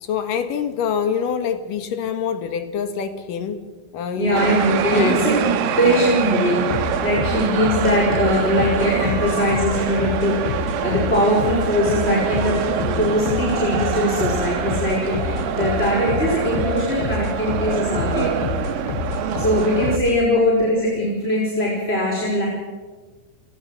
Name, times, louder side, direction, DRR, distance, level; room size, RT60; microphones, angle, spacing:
voice 1, 0.0-3.6 3.9-4.5 4.9-5.2 5.7-6.1 20.3-20.4, left 7 dB, 70° left, 9 dB, 3.1 m, -25 dB
voice 2, 4.2-5.5 5.8-18.4 19.4-22.5, left 1 dB, 15° left, -4 dB, 5.2 m, -21 dB
sound 1, 4.4-20.0, right 8 dB, 80° right, 3.1 m, -25 dB
sound 2, 6.7-20.3, left 8 dB, 85° left, 2.8 m, -29 dB
29.0 x 19.0 x 6.5 m, 1.3 s
omnidirectional pair, 4.1 m